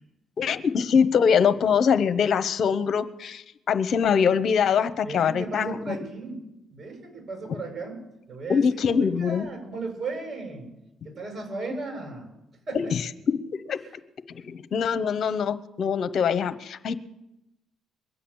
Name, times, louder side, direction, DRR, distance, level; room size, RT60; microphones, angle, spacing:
voice 1, 0.4-6.0 8.5-9.4 12.7-13.0 13.3-13.4 13.7-13.8 14.3-16.9, left 7 dB, 60° left, 12 dB, 1.1 m, -23 dB
voice 2, 5.0-6.4 6.7-8.0 8.3-10.7 11.0-12.3 12.7-12.9 13.8-13.9, right 3 dB, 50° right, 2 dB, 7.9 m, -36 dB
22.0 x 8.5 x 7.3 m, 0.91 s
hypercardioid pair, 50°, 0 cm